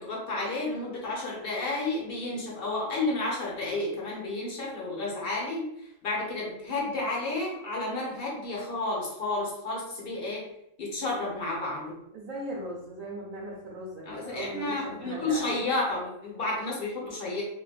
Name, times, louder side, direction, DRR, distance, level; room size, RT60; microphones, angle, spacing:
voice 1, 0.0-10.4 10.8-12.0 14.1-17.4, left 2 dB, 45° left, -4 dB, 1.1 m, -31 dB
voice 2, 12.1-15.6, right 1 dB, 85° right, -5 dB, 1.1 m, -38 dB
3.0 x 2.7 x 2.4 m, 0.82 s
omnidirectional pair, 1.4 m